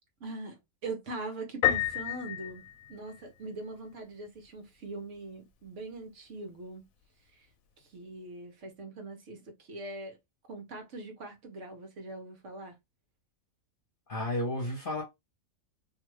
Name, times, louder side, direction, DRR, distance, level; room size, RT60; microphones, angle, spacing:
voice 1, 0.2-6.9 7.3-7.5 7.8-10.2 10.5-12.7, right 2 dB, 60° right, 1.1 m, -42 dB
Piano, 1.6-3.5, left 11 dB, 85° left, 1.0 m, -30 dB
voice 2, 14.1-15.0, left 1 dB, 45° left, 1.0 m, -32 dB
2.7 x 2.4 x 3.1 m
omnidirectional pair, 1.4 m